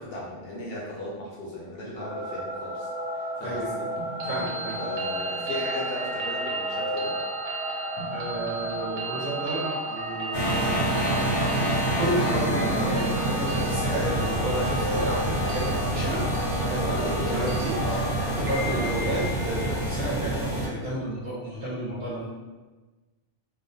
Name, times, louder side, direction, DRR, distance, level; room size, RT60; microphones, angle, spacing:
voice 1, 0.0-3.9 4.8-7.1 16.9-17.5 17.8-18.1, left 1 dB, 65° left, -4 dB, 0.7 m, -37 dB
sound 1, 2.0-18.9, equal, 10° right, 0.8 m, -35 dB
voice 2, 3.4-3.7 4.2-4.8 8.1-10.7 11.7-16.2 16.6-18.0 18.4-22.3, right 1 dB, 50° right, -7 dB, 0.7 m, -31 dB
sound 2, 4.0-19.9, right 2 dB, 85° right, 0.9 m, -35 dB
sound 3, 10.3-20.7, right 1 dB, 85° left, 1.0 m, -27 dB
2.3 x 2.2 x 2.6 m, 1.2 s
omnidirectional pair, 1.2 m